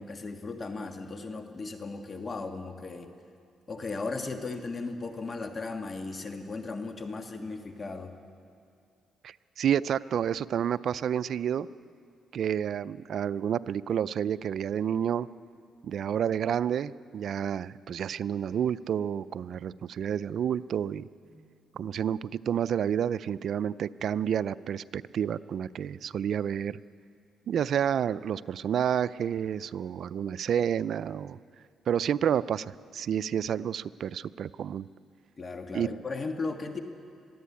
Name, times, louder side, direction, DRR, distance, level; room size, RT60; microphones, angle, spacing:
voice 1, 0.0-3.1 3.7-8.1 21.3-21.5 35.4-36.8, left 3 dB, 35° left, 5 dB, 1.5 m, -36 dB
voice 2, 9.2-11.7 12.3-15.3 15.8-21.1 21.8-26.8 27.5-31.4 31.9-34.9 35.7-35.9, right 9 dB, 65° right, 17 dB, 0.4 m, -29 dB
21.5 x 15.0 x 8.4 m, 2.4 s
cardioid pair, 90°, 0 cm